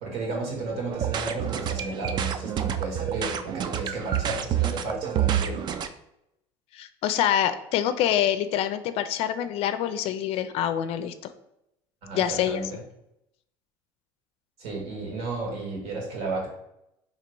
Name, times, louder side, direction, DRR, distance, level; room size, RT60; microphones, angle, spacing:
voice 1, 0.0-5.6 12.0-12.8 14.6-16.5, right 3 dB, 70° right, -1 dB, 1.5 m, -33 dB
sound 1, 0.9-5.9, right 10 dB, 40° right, 0.4 m, -28 dB
voice 2, 6.7-11.3 12.1-12.6, left 10 dB, 60° left, 11 dB, 0.4 m, -26 dB
2.9 x 2.8 x 4.5 m, 0.81 s
supercardioid pair, 115°, 11 cm